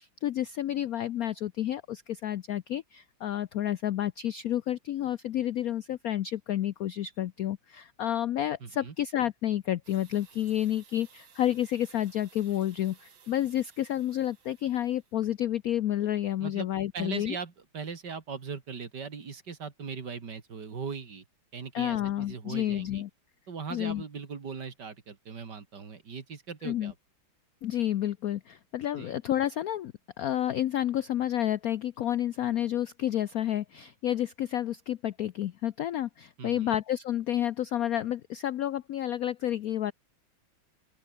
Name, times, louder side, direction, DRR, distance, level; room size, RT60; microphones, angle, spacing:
voice 1, 0.0-17.4 21.7-23.1 23.7-24.0 26.6-26.9 27.6-29.9 30.2-39.9, left 12 dB, 75° left, 0.8 m, -30 dB
voice 2, 8.6-8.9 16.4-16.7 16.9-21.2 21.5-23.0 23.5-26.9 29.0-29.2 36.4-36.8, right 5 dB, 55° right, 2.8 m, -39 dB
sound 1, 9.8-15.2, right 7 dB, 75° right, 3.0 m, -58 dB
open air
omnidirectional pair, 2.3 m